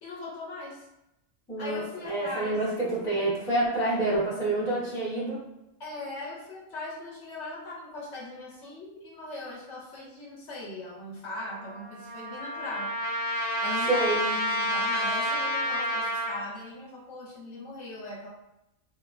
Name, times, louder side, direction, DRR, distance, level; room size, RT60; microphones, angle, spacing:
voice 1, 0.0-0.9 1.6-2.6 5.8-12.9 13.6-18.3, left 2 dB, 65° left, -4 dB, 0.9 m, -39 dB
voice 2, 1.5-5.4 13.9-14.3, right 2 dB, 5° left, -8 dB, 0.5 m, -27 dB
Trumpet, 11.3-16.5, equal, 60° right, 0.8 m, -29 dB
2.9 x 2.1 x 2.4 m, 0.89 s
omnidirectional pair, 1.4 m